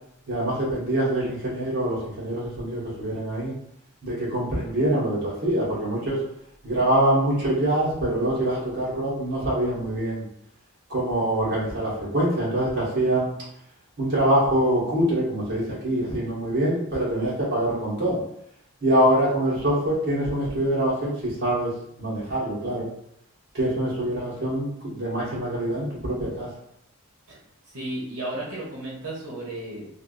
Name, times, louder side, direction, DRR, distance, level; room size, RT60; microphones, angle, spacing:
voice 1, 0.3-3.5 4.0-6.2 6.6-10.3 10.9-13.3 14.0-18.2 18.8-21.7 22.0-22.9 23.5-26.5, right 1 dB, 50° right, -7 dB, 1.3 m, -24 dB
voice 2, 27.7-29.9, right 1 dB, 85° right, -5 dB, 0.9 m, -33 dB
3.4 x 2.4 x 2.5 m, 0.72 s
head